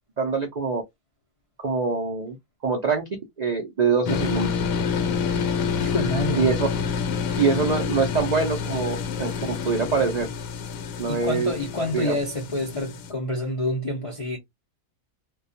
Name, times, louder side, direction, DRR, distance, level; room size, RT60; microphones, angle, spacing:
voice 1, 0.2-0.8 1.6-2.4 2.6-3.0 3.4-4.5 6.4-6.7 7.4-10.3 11.0-11.5 11.9-12.2, right 5 dB, 65° right, 0.4 m, -24 dB
sound 1, 4.1-13.1, left 6 dB, 80° left, 1.0 m, -28 dB
voice 2, 5.7-6.5 11.1-14.4, left 1 dB, 55° left, 0.3 m, -28 dB
2.3 x 2.3 x 2.5 m
omnidirectional pair, 1.5 m